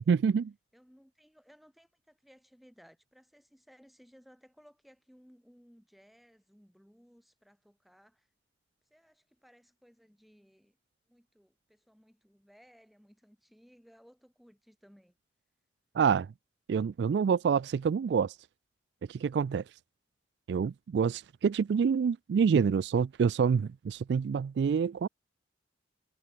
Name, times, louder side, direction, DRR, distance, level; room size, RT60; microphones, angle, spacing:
voice 1, 0.1-0.5 15.9-16.3 16.7-18.4 19.1-19.6 20.5-25.1, right 6 dB, 65° right, 0.3 m, -27 dB
voice 2, 0.7-8.3 8.9-10.8 11.1-15.2, equal, ahead, 4.4 m, -61 dB
head